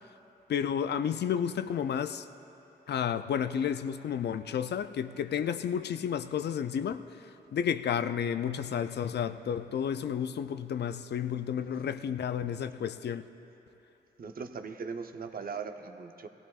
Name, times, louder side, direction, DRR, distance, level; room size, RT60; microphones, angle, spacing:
voice 1, 0.5-2.3 2.9-13.2, left 8 dB, 70° left, 12 dB, 0.4 m, -31 dB
voice 2, 14.2-16.3, right 5 dB, 55° right, 7 dB, 0.7 m, -39 dB
18.0 x 15.0 x 2.4 m, 3.0 s
cardioid pair, 65°, 18 cm